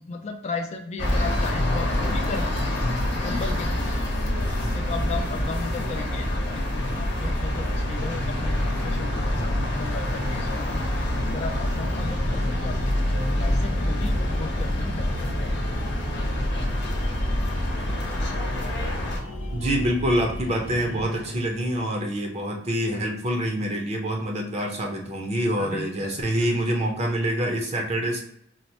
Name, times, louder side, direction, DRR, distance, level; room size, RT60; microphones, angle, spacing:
voice 1, 0.0-2.7 3.1-4.0 4.7-10.9 11.3-12.9 13.4-15.4 25.6-26.5, left 4 dB, 35° left, 4 dB, 0.3 m, -35 dB
sound 1, 1.0-19.2, left 1 dB, 65° left, 0.8 m, -26 dB
sound 2, 1.9-3.9 4.3-7.0 7.7-10.3 10.9-13.5 13.8-16.7 18.2-19.7 20.3-21.7, right 2 dB, 85° right, 1.0 m, -45 dB
voice 2, 6.9-7.3 9.3-9.6 19.5-28.2, right 1 dB, 35° right, 2 dB, 0.5 m, -26 dB
sound 3, 11.7-21.0, equal, 85° left, 0.6 m, -35 dB
4.1 x 2.0 x 2.8 m, 0.73 s
head